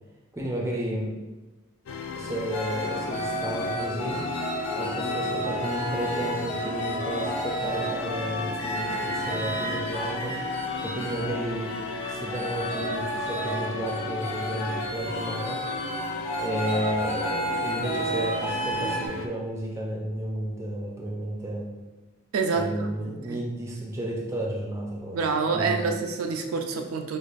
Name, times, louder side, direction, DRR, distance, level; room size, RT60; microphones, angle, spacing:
voice 1, 0.3-1.2 2.2-4.2 4.7-10.4 10.8-15.6 16.4-21.7 22.5-25.9, right 1 dB, 15° right, -1 dB, 0.4 m, -32 dB
sound 1, 1.9-19.3, left 4 dB, 80° left, 0.3 m, -36 dB
sound 2, 2.5-11.4 11.7-19.1, equal, 30° left, 0.7 m, -31 dB
voice 2, 22.3-22.7 23.0-23.4 25.1-27.2, right 4 dB, 80° right, 5 dB, 0.4 m, -27 dB
4.6 x 2.4 x 2.5 m, 1.1 s
head